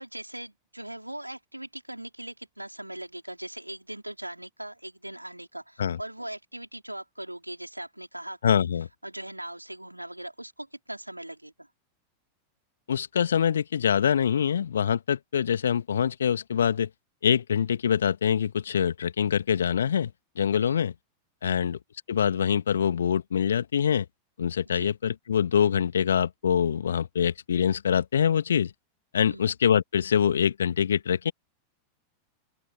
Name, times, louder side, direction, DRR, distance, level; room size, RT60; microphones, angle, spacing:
voice 1, 0.0-8.7 9.0-11.7 20.6-20.9 21.4-21.7 24.7-24.9 29.2-29.5, right 1 dB, 85° right, 5.0 m, -40 dB
voice 2, 8.4-8.9 12.9-16.9 17.2-20.1 20.4-20.9 21.4-21.8 22.1-24.1 24.4-28.7 29.1-31.3, left 8 dB, 65° left, 2.2 m, -24 dB
figure-of-eight pair, 90°, 0 cm